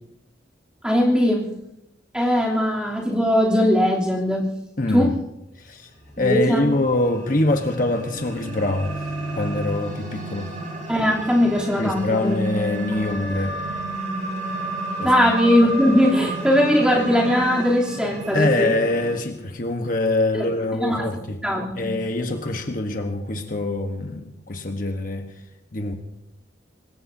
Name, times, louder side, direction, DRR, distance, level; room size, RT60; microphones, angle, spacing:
voice 1, 0.8-1.5 2.1-4.5 4.9-5.2 6.2-6.6 10.9-12.4 15.0-18.7 20.3-20.4 20.8-21.1 21.4-21.9, equal, 5° right, -4 dB, 3.2 m, -20 dB
voice 2, 4.8-5.1 5.6-5.9 6.2-9.0 9.3-10.5 11.8-13.6 15.0-15.1 18.3-21.4 21.7-25.3 25.7-25.9, left 2 dB, 45° left, 4 dB, 1.2 m, -24 dB
sound 1, 6.1-19.2, right 1 dB, 40° right, 6.0 m, -31 dB
25.5 x 20.0 x 2.8 m, 0.87 s
head